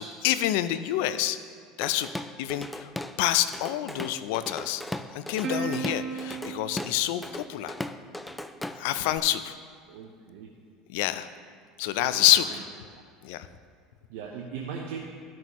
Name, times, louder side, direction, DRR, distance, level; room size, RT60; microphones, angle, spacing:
voice 1, 0.0-1.4 1.8-2.1 2.4-2.9 3.2-4.8 5.1-7.7 8.8-9.5 10.9-11.3 11.8-12.6 13.2-13.5, left 13 dB, 75° left, 13 dB, 0.4 m, -27 dB
Drum kit / Drum, 1.8-3.2 3.5-9.2, left 1 dB, 5° left, 0.3 m, -38 dB
Plucked string instrument, 5.4-8.2, right 5 dB, 50° right, 1.1 m, -36 dB
voice 2, 9.9-10.5 12.1-12.6 14.1-15.0, right 6 dB, 80° right, -1 dB, 0.9 m, -39 dB
13.5 x 6.1 x 3.0 m, 2.1 s
supercardioid pair, 120°, 0 cm